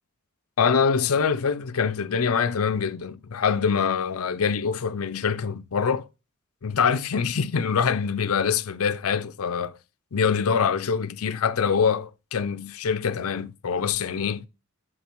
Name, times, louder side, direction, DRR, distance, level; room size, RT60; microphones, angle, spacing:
voice 1, 0.6-6.1 6.6-9.8 10.1-14.5, left 6 dB, 80° left, 0.6 m, -24 dB
10.5 x 6.7 x 4.5 m
head